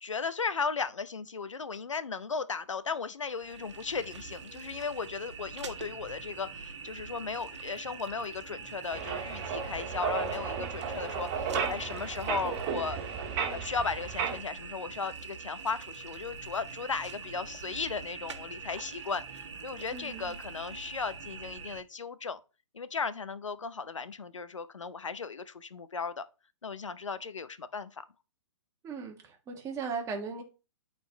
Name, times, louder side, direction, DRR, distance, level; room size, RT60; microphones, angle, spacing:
voice 1, 0.0-13.0 13.5-22.4 22.7-26.2 26.6-28.0, left 5 dB, 85° left, 0.7 m, -36 dB
sound 1, 3.2-21.8, right 5 dB, 70° right, 1.4 m, -44 dB
sound 2, 8.9-14.4, right 6 dB, 35° right, 1.5 m, -34 dB
voice 2, 19.9-20.4 28.8-30.4, right 5 dB, 20° right, 1.7 m, -37 dB
12.0 x 4.4 x 3.0 m
figure-of-eight pair, 125°, 16 cm